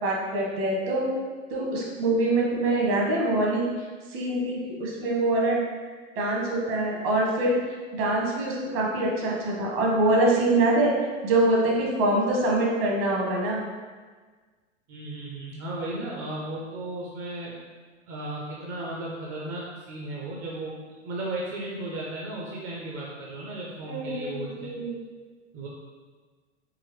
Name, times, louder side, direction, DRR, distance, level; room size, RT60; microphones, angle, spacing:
voice 1, 0.0-1.1 1.5-3.7 4.1-5.6 6.1-7.6 7.9-10.9 11.2-13.6 23.8-25.0, right 2 dB, 55° right, -2 dB, 1.4 m, -24 dB
voice 2, 14.9-17.6 18.1-20.8 21.0-24.7 25.5-25.7, right 2 dB, 35° right, -3 dB, 0.7 m, -35 dB
4.7 x 2.9 x 3.1 m, 1.4 s
hypercardioid pair, 100°, 37 cm